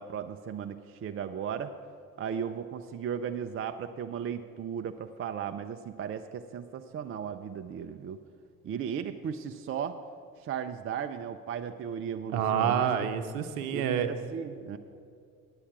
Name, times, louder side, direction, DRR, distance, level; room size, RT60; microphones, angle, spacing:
voice 1, 0.0-1.7 2.2-8.2 8.6-10.0 10.4-13.1 13.7-14.8, right 8 dB, 30° right, 7 dB, 0.5 m, -36 dB
voice 2, 12.3-14.1, right 8 dB, 75° right, 8 dB, 0.8 m, -27 dB
9.8 x 8.6 x 6.1 m, 2.3 s
hypercardioid pair, 55°, 42 cm